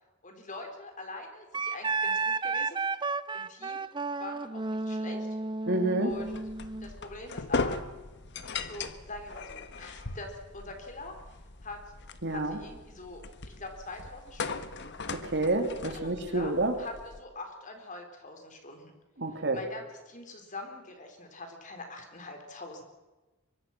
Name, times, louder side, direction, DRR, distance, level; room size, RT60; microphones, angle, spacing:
voice 1, 0.2-2.8 3.3-3.8 4.2-5.3 5.6-5.7 6.0-6.4 6.8-7.8 8.5-11.2 11.6-11.8 12.3-13.2 13.6-14.7 15.9-16.5 16.8-18.9 19.3-22.8, left 2 dB, 35° left, 4 dB, 4.2 m, -44 dB
Wind instrument woodwind instrument, 1.5-6.9, right 4 dB, 20° right, 0.7 m, -32 dB
voice 2, 5.7-6.2 12.2-12.6 15.1-16.7 19.2-19.6, right 2 dB, 55° right, 5 dB, 2.9 m, -28 dB
sound 1, 6.1-17.2, left 4 dB, 55° left, 1.5 m, -39 dB
24.0 x 23.5 x 6.0 m, 1.2 s
head